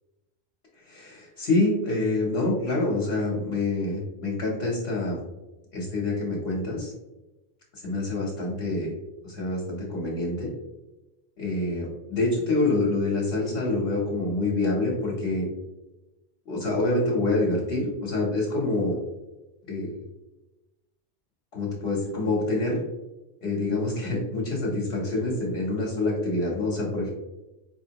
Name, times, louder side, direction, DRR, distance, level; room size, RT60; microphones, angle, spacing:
voice 1, 0.9-5.2 5.7-6.9 7.7-8.9 9.2-10.5 11.4-15.5 16.5-19.0 19.7-20.0 21.5-22.8 23.4-27.1, left 2 dB, 70° left, -3 dB, 1.1 m, -26 dB
4.3 x 3.0 x 2.8 m, 1.0 s
omnidirectional pair, 1.1 m